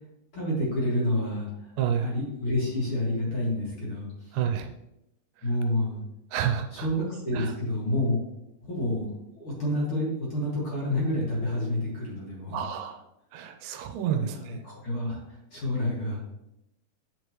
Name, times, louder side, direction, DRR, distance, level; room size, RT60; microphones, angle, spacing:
voice 1, 0.3-1.5 2.0-4.1 5.4-6.0 6.7-8.2 8.6-9.0 9.4-12.6 14.2-15.2 15.5-16.3, left 1 dB, 40° left, -5 dB, 2.5 m, -28 dB
voice 2, 1.8-2.1 4.3-4.7 6.3-6.9 7.3-7.5 12.5-13.0 13.3-14.6, right 9 dB, 90° right, 5 dB, 2.4 m, -29 dB
9.3 x 5.0 x 3.1 m, 0.85 s
omnidirectional pair, 4.1 m